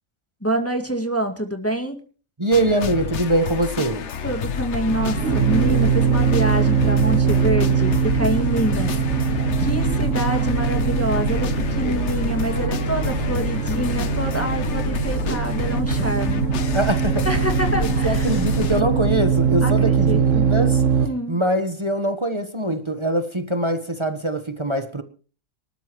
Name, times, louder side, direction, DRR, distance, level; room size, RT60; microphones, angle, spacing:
voice 1, 0.4-2.0 4.2-16.5 17.2-18.4 19.6-20.5 21.0-21.4, right 1 dB, 10° left, 2.0 m, -26 dB
voice 2, 2.4-4.0 16.7-17.3 17.7-20.8 21.3-25.0, right 1 dB, 25° right, 1.2 m, -23 dB
sound 1, 2.5-18.8, left 7 dB, 60° left, 1.2 m, -29 dB
sound 2, 4.9-21.1, right 6 dB, 70° right, 1.9 m, -21 dB
26.0 x 12.5 x 3.1 m
omnidirectional pair, 1.4 m